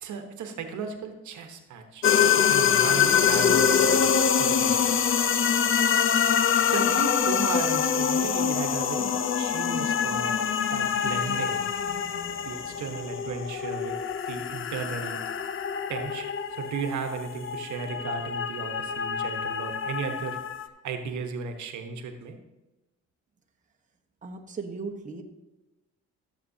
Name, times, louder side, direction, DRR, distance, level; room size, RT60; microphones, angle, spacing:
voice 1, 0.0-2.0 2.4-5.0 6.7-10.4 10.7-11.7 12.4-14.0 14.3-15.2 15.9-20.4 20.8-22.4, right 5 dB, 75° right, 6 dB, 1.1 m, -35 dB
sound 1, 2.0-20.7, left 7 dB, 45° left, 0.6 m, -25 dB
voice 2, 24.2-25.2, right 4 dB, 25° right, 1 dB, 1.2 m, -37 dB
14.0 x 7.4 x 2.8 m, 1.0 s
cardioid pair, 90°, 30 cm